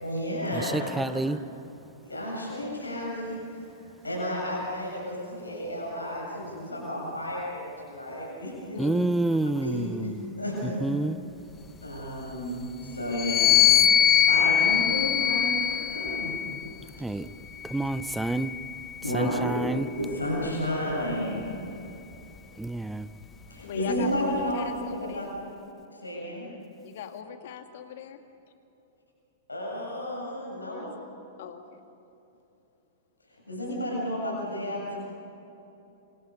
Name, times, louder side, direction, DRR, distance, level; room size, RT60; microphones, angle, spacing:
voice 1, 0.0-1.2 2.0-3.4 4.0-8.8 9.6-10.8 11.8-13.7 14.2-16.4 19.0-19.7 19.9-21.5 23.5-25.3 25.9-26.5 29.5-30.9 33.5-35.0, equal, 85° left, -3 dB, 7.2 m, -32 dB
voice 2, 0.5-1.4 8.8-10.1 10.8-11.1 17.0-17.3 17.7-18.5 19.1-19.9 22.6-23.1, right 2 dB, 5° right, 14 dB, 0.8 m, -28 dB
voice 3, 8.7-9.1 23.6-25.3 26.8-28.2 30.6-31.1 31.4-31.8, left 7 dB, 60° left, 6 dB, 2.1 m, -40 dB
sound 1, 13.1-16.7 17.5-19.1, left 10 dB, 30° left, 0.7 m, -23 dB
27.0 x 25.5 x 5.5 m, 3.0 s
figure-of-eight pair, 100°, 0 cm